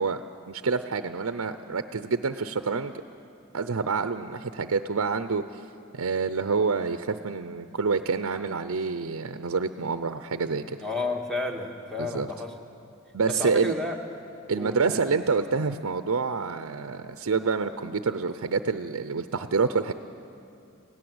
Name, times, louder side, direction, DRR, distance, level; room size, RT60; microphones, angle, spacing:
voice 1, 0.0-3.0 3.5-5.6 5.9-10.8 12.0-12.3 13.1-13.7 14.5-19.9, right 4 dB, 80° right, 10 dB, 0.6 m, -27 dB
voice 2, 10.8-12.6 13.3-14.0 14.6-15.0, left 2 dB, ahead, 2 dB, 1.7 m, -32 dB
27.5 x 17.5 x 7.9 m, 2.6 s
head